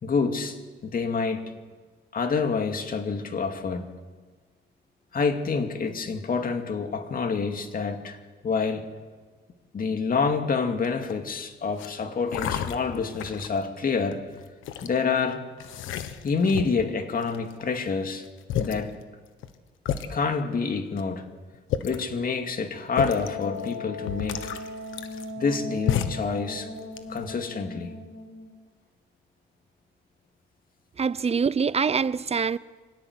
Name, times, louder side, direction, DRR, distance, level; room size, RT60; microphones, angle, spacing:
voice 1, 0.0-1.4 2.1-3.9 5.1-8.2 8.4-8.9 9.7-14.3 14.8-15.5 16.2-18.2 18.6-18.9 20.1-21.2 21.8-24.5 25.4-26.7 27.1-27.9 31.3-31.4, left 5 dB, 45° left, 2.5 m, -27 dB
sound 1, 10.8-11.2 11.7-11.9 12.3-13.6 14.1-14.9 15.6-16.8 17.2-17.8 18.2-18.3 18.5-18.8 19.4-19.5 19.9-20.1 21.0-21.1 21.5-22.1 22.9-23.3 23.7-23.8 24.1-25.6 25.9-26.3 26.8-27.3, left 9 dB, 85° left, 1.4 m, -31 dB
Wind instrument woodwind instrument, 23.0-28.5, left 3 dB, 65° left, 6.8 m, -38 dB
voice 2, 31.0-32.6, right 6 dB, 30° right, 0.7 m, -24 dB
25.5 x 17.5 x 8.2 m
cardioid pair, 90°, 20 cm